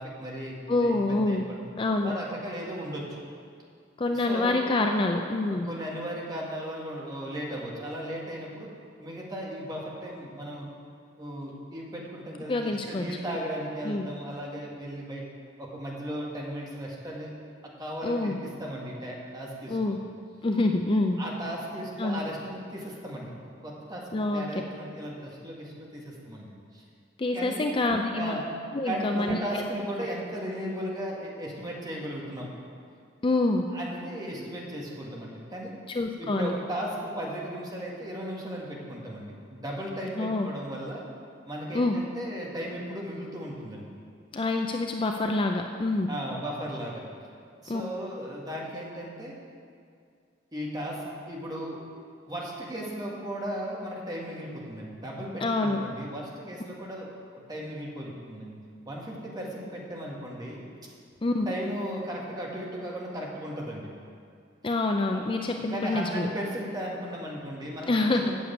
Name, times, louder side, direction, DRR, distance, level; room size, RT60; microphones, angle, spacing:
voice 1, 0.0-1.4 2.0-3.2 4.1-4.6 5.5-8.7 9.0-10.7 11.2-15.3 15.6-17.3 17.6-20.0 21.2-23.3 23.6-26.8 27.3-27.7 28.0-28.4 28.9-32.5 33.7-35.7 36.2-41.0 41.4-43.9 46.1-47.0 47.6-49.3 50.5-51.8 52.3-58.6 58.9-60.6 61.5-63.9 65.1-68.3, equal, 20° right, -3 dB, 1.8 m, -36 dB
voice 2, 0.7-1.4 1.8-2.1 4.0-5.7 12.5-13.0 13.8-14.1 18.0-18.4 19.7-20.0 20.4-21.2 22.0-22.2 24.1-24.4 27.2-28.4 28.7-29.6 33.2-33.6 35.9-36.5 40.2-40.5 41.7-42.0 44.3-46.1 47.7-47.8 55.4-55.8 61.2-61.5 64.6-66.3 67.9-68.2, left 2 dB, 25° left, 4 dB, 0.4 m, -26 dB
8.6 x 6.9 x 8.5 m, 2.3 s
head